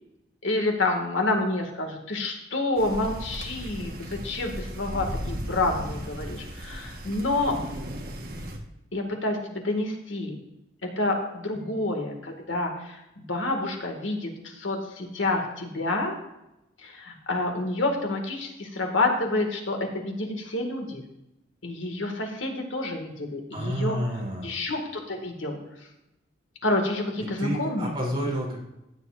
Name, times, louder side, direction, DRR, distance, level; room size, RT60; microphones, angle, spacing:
voice 1, 0.4-3.9 4.2-7.6 8.9-10.4 11.0-12.7 13.2-16.2 16.8-21.0 21.6-24.0 24.4-24.8 25.1-25.6 26.6-27.9, left 2 dB, 85° left, 2 dB, 2.1 m, -28 dB
sound 1, 2.8-8.6, equal, 50° right, 1.4 m, -36 dB
voice 2, 11.5-11.9 23.5-24.6 27.4-28.6, equal, 25° right, -4 dB, 3.3 m, -30 dB
15.5 x 10.0 x 2.6 m, 0.90 s
head